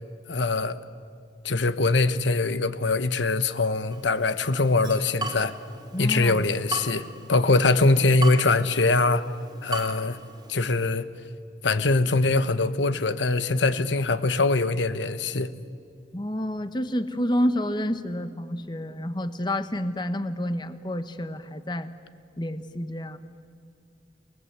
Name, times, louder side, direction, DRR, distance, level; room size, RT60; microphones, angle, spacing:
voice 1, 0.3-0.8 1.4-5.5 6.0-7.0 7.3-9.2 9.6-10.2 10.5-11.1 11.6-15.5, left 3 dB, 75° left, 1.1 m, -22 dB
Water tap faucet / Drip, 3.9-10.9, right 2 dB, 20° right, 2.6 m, -38 dB
voice 2, 5.9-6.4 16.1-21.9 22.4-23.2, left 1 dB, 25° left, 1.1 m, -29 dB
29.5 x 20.0 x 8.3 m
head